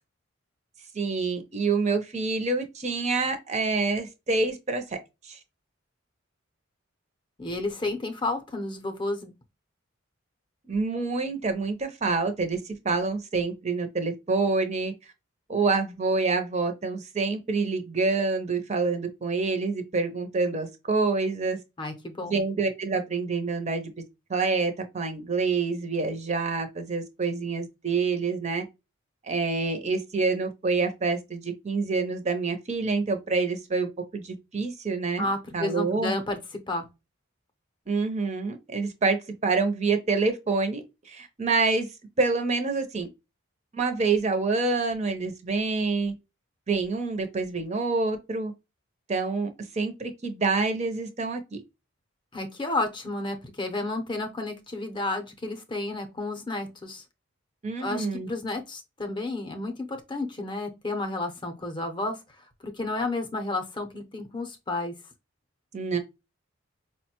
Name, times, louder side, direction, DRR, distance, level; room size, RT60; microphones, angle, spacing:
voice 1, 0.9-5.0 5.2-5.4 10.7-14.9 15.5-21.6 22.2-23.9 24.3-28.6 29.2-35.3 35.5-36.1 37.9-41.9 42.2-43.1 43.7-46.1 46.7-48.5 49.1-51.6 57.6-58.3 65.7-66.0, right 4 dB, 30° right, 0.5 m, -27 dB
voice 2, 7.4-9.3 21.8-22.4 35.2-36.4 36.7-36.9 52.3-57.0 57.8-62.2 62.6-64.9, left 2 dB, 20° left, 0.6 m, -31 dB
4.7 x 2.1 x 2.8 m
head